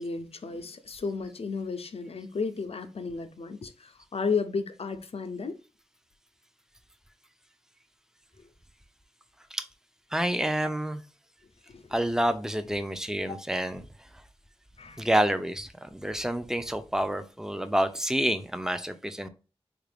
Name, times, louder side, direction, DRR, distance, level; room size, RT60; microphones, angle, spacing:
voice 1, 0.0-5.6 8.4-8.5 11.7-12.0 13.3-13.4 14.8-15.1, left 4 dB, 65° left, 0.5 m, -33 dB
voice 2, 10.1-11.0 11.9-13.9 15.0-19.3, right 1 dB, 5° right, 0.5 m, -28 dB
3.7 x 2.4 x 3.3 m
wide cardioid pair, 50°, 11 cm